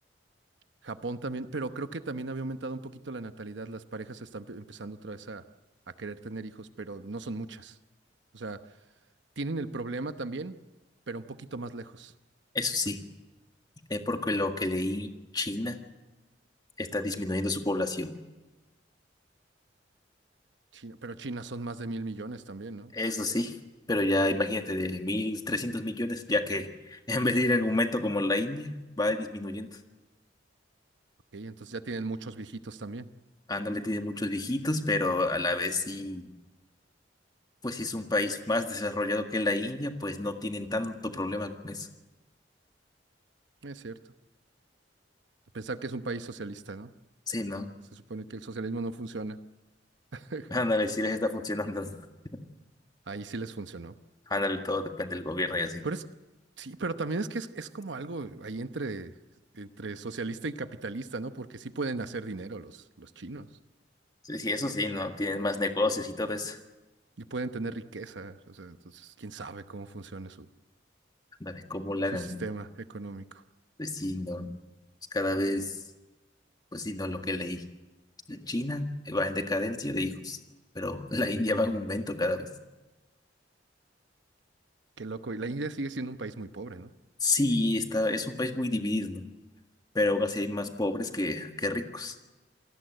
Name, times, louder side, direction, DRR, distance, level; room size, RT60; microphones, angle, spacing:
voice 1, 0.8-5.4 6.0-7.8 8.3-8.6 9.4-10.5 11.1-12.1 20.7-22.9 31.3-33.1 43.6-44.0 45.5-46.9 47.9-49.4 50.1-50.5 53.1-53.9 55.8-56.0 56.6-59.1 59.5-63.5 67.2-70.5 72.1-73.4 85.0-86.9, right 3 dB, 75° right, 10 dB, 1.0 m, -37 dB
voice 2, 12.5-13.0 13.9-15.8 16.8-18.1 22.9-23.6 23.9-29.7 33.5-36.3 37.6-41.9 47.3-47.7 50.5-52.0 54.3-55.8 64.2-66.6 71.4-72.4 73.8-74.5 75.1-75.8 76.7-77.6 78.3-80.4 80.8-82.5 87.2-89.3 89.9-92.2, left 2 dB, 20° left, 5 dB, 1.8 m, -29 dB
27.5 x 18.5 x 8.0 m, 1.1 s
head